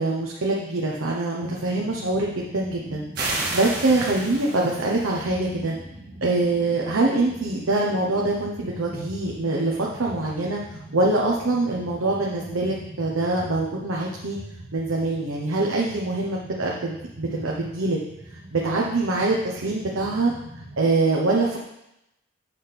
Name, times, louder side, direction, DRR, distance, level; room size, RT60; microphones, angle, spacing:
voice 1, 0.0-5.7 6.2-10.6 10.9-14.4 14.7-18.0 18.5-20.3 20.8-21.6, right 2 dB, 90° right, -2 dB, 0.9 m, -24 dB
sound 1, 1.4-20.9, right 1 dB, 65° right, 1.4 m, -42 dB
sound 2, 3.1-5.2, right 2 dB, 50° right, 1.6 m, -30 dB
7.7 x 3.4 x 5.9 m, 0.86 s
head